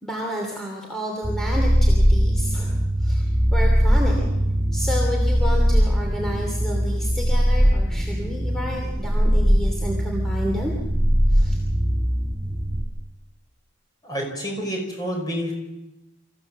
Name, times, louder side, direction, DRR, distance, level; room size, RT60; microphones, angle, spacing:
voice 1, 0.0-4.3 4.7-10.7 11.3-11.6, equal, ahead, -1 dB, 2.8 m, -31 dB
sound 1, 1.2-12.8, equal, 15° right, 4.5 m, -20 dB
voice 2, 14.0-15.5, equal, 20° left, 1 dB, 5.2 m, -28 dB
26.5 x 15.0 x 7.5 m, 0.98 s
head